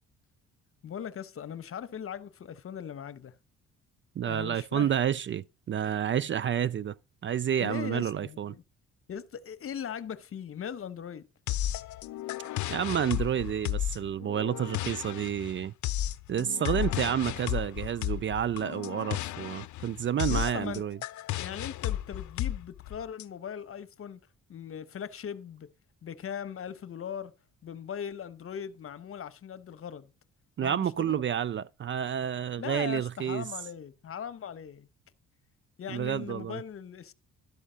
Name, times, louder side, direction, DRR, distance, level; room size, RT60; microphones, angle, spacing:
voice 1, 0.8-3.3 4.3-4.9 7.6-8.6 9.1-11.3 20.3-20.8 21.4-24.2 24.5-25.7 26.0-27.3 27.6-30.1 30.6-31.2 32.6-34.9 35.8-37.1, left 8 dB, 45° left, 0.9 m, -39 dB
voice 2, 4.2-6.9 7.2-8.5 12.7-15.7 16.3-21.0 30.6-33.5 35.9-36.6, right 9 dB, 40° right, 0.4 m, -30 dB
sound 1, 11.5-23.2, left 13 dB, 70° left, 0.6 m, -33 dB
12.5 x 5.4 x 5.0 m
cardioid pair, 90°, 30 cm